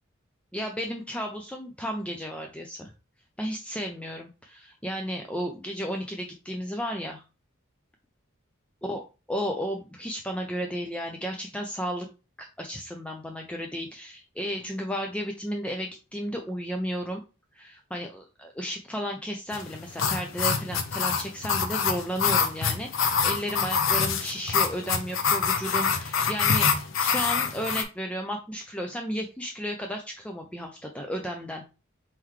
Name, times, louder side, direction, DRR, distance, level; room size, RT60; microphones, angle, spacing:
voice 1, 0.5-2.9 3.4-7.2 8.8-9.0 9.3-12.1 12.4-17.2 17.5-26.7 27.0-31.6, equal, 5° left, 2 dB, 0.4 m, -33 dB
sound 1, 19.5-27.8, left 6 dB, 75° left, 0.7 m, -25 dB
4.4 x 3.8 x 3.1 m, 0.31 s
head